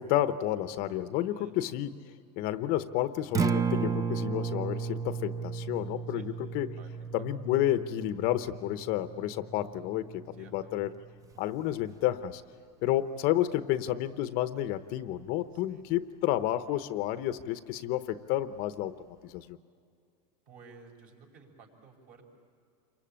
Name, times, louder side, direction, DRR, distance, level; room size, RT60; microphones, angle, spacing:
voice 1, 0.0-2.0 2.4-6.7 7.1-10.9 11.4-12.4 12.8-18.9 19.2-19.6, left 13 dB, 45° left, 11 dB, 0.8 m, -30 dB
voice 2, 1.3-1.7 6.1-6.3 6.7-7.2 10.3-10.7 15.5-15.9 16.4-17.2 20.5-22.3, right 4 dB, 45° right, 2 dB, 6.0 m, -56 dB
Acoustic guitar, 3.2-11.4, right 5 dB, 15° right, 0.6 m, -34 dB
28.0 x 24.0 x 8.8 m, 2.4 s
supercardioid pair, 145°, 21 cm